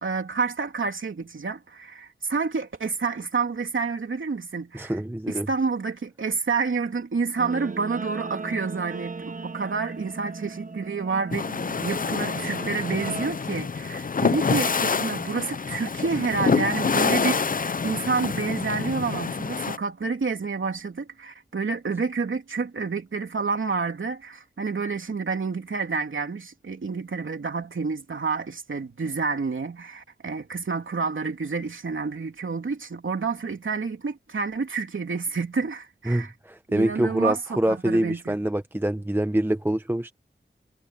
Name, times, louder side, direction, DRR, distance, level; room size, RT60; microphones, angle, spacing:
voice 1, 0.0-5.0 5.3-11.5 11.8-36.3 36.7-38.4, right 4 dB, 80° right, 3.2 m, -29 dB
voice 2, 4.7-5.5 36.1-40.1, right 1 dB, 10° right, 0.8 m, -25 dB
Guitar, 7.4-13.3, right 3 dB, 40° right, 1.0 m, -37 dB
sound 1, 11.3-19.8, left 5 dB, 45° left, 0.5 m, -27 dB
wide cardioid pair, 60°, 20 cm